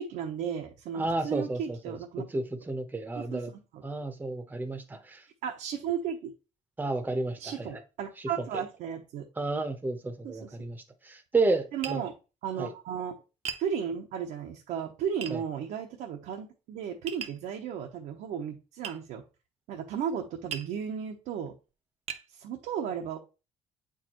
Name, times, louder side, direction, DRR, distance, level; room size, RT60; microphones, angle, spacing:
voice 1, 0.0-2.2 3.1-3.4 3.7-3.8 5.4-6.3 7.4-9.2 10.2-10.5 11.7-12.1 12.4-13.1 13.6-19.2 19.7-21.5 22.3-23.2, right 8 dB, 80° right, 0.9 m, -34 dB
voice 2, 0.9-3.5 3.8-5.3 6.8-7.8 8.4-8.6 9.4-12.0 12.6-12.7 15.3-15.4, right 3 dB, 15° right, 0.9 m, -32 dB
Tap, 11.8-12.0 13.5-13.7 15.2-15.4 17.1-17.4 18.8-19.0 20.5-20.7 21.4-21.5 22.1-22.3, right 7 dB, 50° right, 0.8 m, -37 dB
8.2 x 4.7 x 3.0 m
cardioid pair, 115°, 14 cm